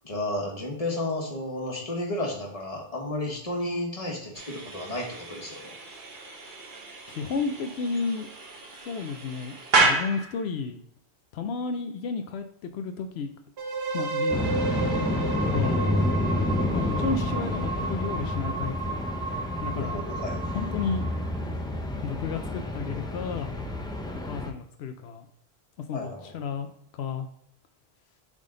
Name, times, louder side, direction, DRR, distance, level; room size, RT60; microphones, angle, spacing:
voice 1, 0.0-5.7 19.7-20.4 25.9-26.4, left 1 dB, 35° left, -1 dB, 1.5 m, -32 dB
sound 1, 4.3-10.5, right 3 dB, 55° right, 1.0 m, -30 dB
voice 2, 7.1-8.3 8.8-10.8 11.3-13.3 13.9-15.8 16.7-19.0 19.6-20.1 20.5-21.1 22.0-23.5 24.2-25.3 25.9-26.7 26.9-27.3, left 5 dB, 85° left, 7 dB, 0.8 m, -32 dB
sound 2, 13.6-21.4, right 4 dB, 85° right, 1.1 m, -33 dB
sound 3, 14.3-24.5, left 1 dB, 5° left, 0.6 m, -29 dB
7.3 x 3.8 x 3.8 m, 0.71 s
omnidirectional pair, 1.0 m